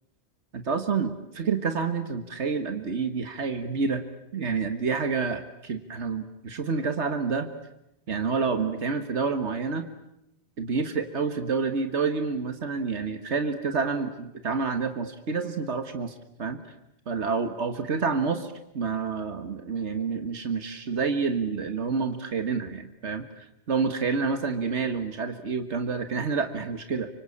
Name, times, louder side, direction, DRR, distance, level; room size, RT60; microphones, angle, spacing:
voice 1, 0.5-4.0 4.3-7.5 8.1-9.9 10.6-16.1 16.4-16.6 17.1-27.1, right 5 dB, 85° right, 8 dB, 1.8 m, -28 dB
25.5 x 24.5 x 8.6 m, 0.82 s
omnidirectional pair, 1.1 m